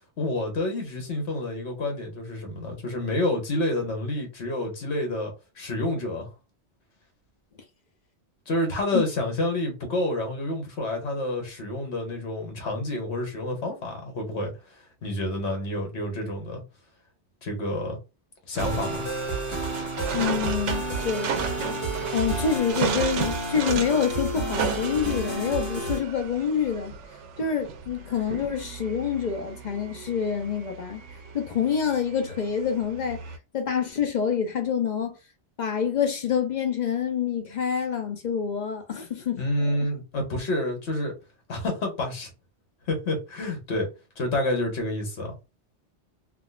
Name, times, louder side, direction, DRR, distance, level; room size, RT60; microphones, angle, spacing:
voice 1, 0.2-6.3 8.5-14.5 15.0-16.6 17.4-18.0 18.5-19.1 39.4-41.1 41.5-42.3 42.9-43.9 44.2-45.3, left 1 dB, 70° left, 1.4 m, -28 dB
sound 1, 18.6-26.0, right 2 dB, 10° left, 1.6 m, -30 dB
sound 2, 18.6-33.4, right 6 dB, 90° right, 0.9 m, -35 dB
voice 2, 20.1-21.4 22.1-26.9 27.4-31.0 31.3-33.2 33.5-35.1 35.6-39.8, left 7 dB, 50° left, 0.6 m, -27 dB
3.6 x 2.3 x 2.3 m
omnidirectional pair, 1.2 m